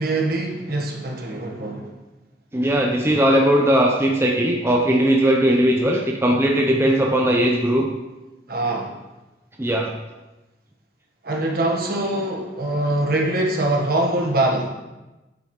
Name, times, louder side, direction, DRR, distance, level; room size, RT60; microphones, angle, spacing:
voice 1, 0.0-1.9 8.5-8.9 11.2-14.7, right 2 dB, 55° right, 0 dB, 1.3 m, -23 dB
voice 2, 2.5-7.9 9.6-9.9, right 1 dB, 15° right, 0 dB, 0.6 m, -18 dB
9.2 x 7.7 x 3.1 m, 1.1 s
head